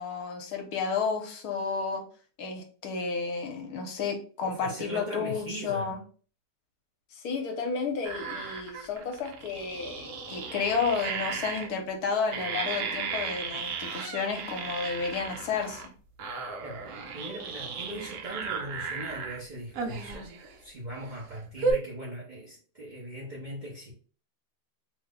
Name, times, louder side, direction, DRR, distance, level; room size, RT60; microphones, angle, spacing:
voice 1, 0.0-2.0 2.4-6.0 7.1-15.8, left 5 dB, 75° left, 1.2 m, -31 dB
voice 2, 4.4-6.0 16.6-20.3 20.6-23.9, right 1 dB, 45° right, 0.6 m, -40 dB
sound 1, 8.0-11.7 12.3-15.9 16.2-19.4 19.8-20.5 21.1-21.2 21.6-21.7, right 5 dB, 70° right, 1.1 m, -35 dB
2.9 x 2.0 x 3.4 m
omnidirectional pair, 1.7 m